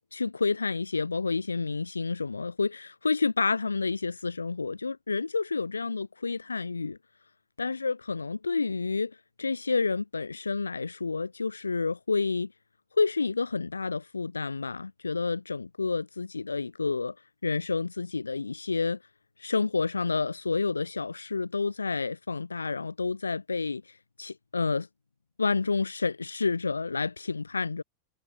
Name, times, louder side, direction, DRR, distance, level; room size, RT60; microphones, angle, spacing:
voice 1, 0.1-7.0 7.6-12.5 13.0-17.2 17.4-19.0 19.4-24.9 25.4-27.8, left 4 dB, 80° left, 2.4 m, -29 dB
figure-of-eight pair, 90°, 0 cm